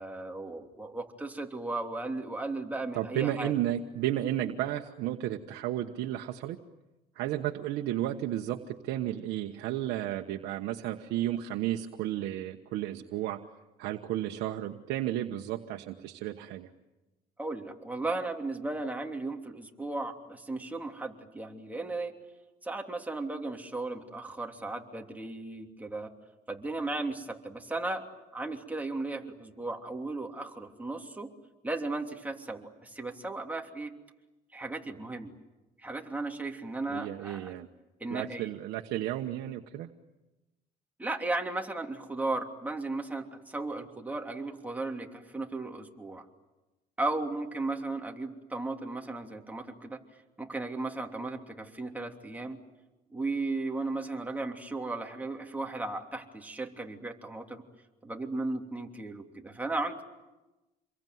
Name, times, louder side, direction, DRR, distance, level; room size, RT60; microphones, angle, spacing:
voice 1, 0.0-3.5 17.4-22.1 22.6-26.1 26.5-28.0 28.3-31.3 31.6-33.9 34.5-35.3 35.8-37.6 38.0-38.5 41.0-46.2 47.0-50.0 50.4-52.6 53.1-57.6 58.0-60.0, right 2 dB, 10° right, 2 dB, 3.1 m, -35 dB
voice 2, 3.0-6.6 7.1-13.4 13.8-16.7 36.9-37.7 38.1-39.9, right 13 dB, 85° right, 4 dB, 1.3 m, -33 dB
28.0 x 22.5 x 9.4 m, 1.1 s
cardioid pair, 110°, 17 cm